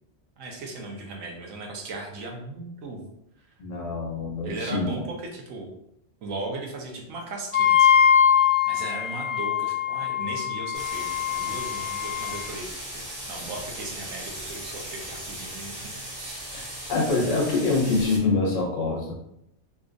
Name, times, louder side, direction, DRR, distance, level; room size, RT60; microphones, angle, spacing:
voice 1, 0.4-3.0 4.4-5.7 6.2-7.9 8.2-12.9 13.2-15.9 16.2-16.4, right 2 dB, 90° right, 1 dB, 1.2 m, -37 dB
voice 2, 3.6-5.1 16.5-16.6 16.9-19.1, left 3 dB, 70° left, -1 dB, 1.3 m, -25 dB
Wind instrument woodwind instrument, 7.5-12.5, left 8 dB, 50° left, 0.7 m, -22 dB
sound 1, 10.7-18.2, right 1 dB, 50° right, 1.1 m, -38 dB
4.0 x 2.4 x 2.5 m, 0.78 s
omnidirectional pair, 1.4 m